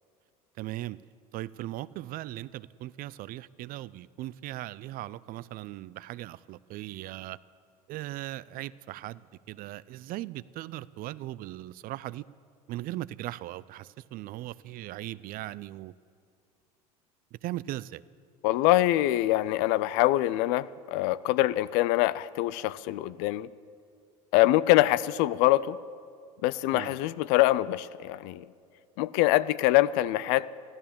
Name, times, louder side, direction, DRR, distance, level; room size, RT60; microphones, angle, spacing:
voice 1, 0.6-1.0 1.3-7.4 7.9-12.2 12.7-15.9 17.3-18.0 26.7-27.0, right 15 dB, 45° right, 19 dB, 0.4 m, -38 dB
voice 2, 18.4-23.5 24.3-25.8 26.4-28.4 29.0-30.5, left 16 dB, 60° left, 19 dB, 0.5 m, -24 dB
14.0 x 12.5 x 7.1 m, 2.3 s
hypercardioid pair, 75°, 20 cm